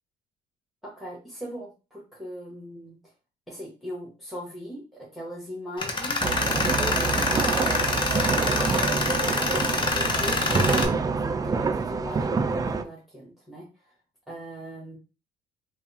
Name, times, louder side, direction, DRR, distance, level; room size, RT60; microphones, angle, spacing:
voice 1, 0.8-3.0 3.5-6.3 6.7-9.6 9.9-10.8 11.2-13.7 14.3-15.0, equal, ahead, -4 dB, 1.4 m, -40 dB
Tools, 5.8-10.8, left 3 dB, 30° left, 0.7 m, -26 dB
sound 1, 6.2-12.8, right 4 dB, 20° right, 0.4 m, -26 dB
3.4 x 2.3 x 4.1 m, 0.32 s
cardioid pair, 110°, 17 cm